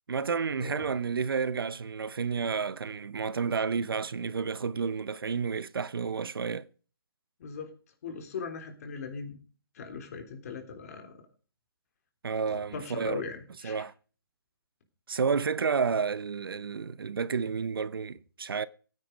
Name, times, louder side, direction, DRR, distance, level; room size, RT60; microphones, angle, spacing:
voice 1, 0.1-6.7 12.2-13.2 13.6-13.9 15.1-18.7, right 5 dB, 70° right, 0.8 m, -31 dB
voice 2, 7.4-7.7 8.0-9.4 9.7-11.2 12.5-13.8, left 5 dB, 40° left, 3.5 m, -39 dB
15.5 x 9.4 x 5.2 m
hypercardioid pair, 155°, 12 cm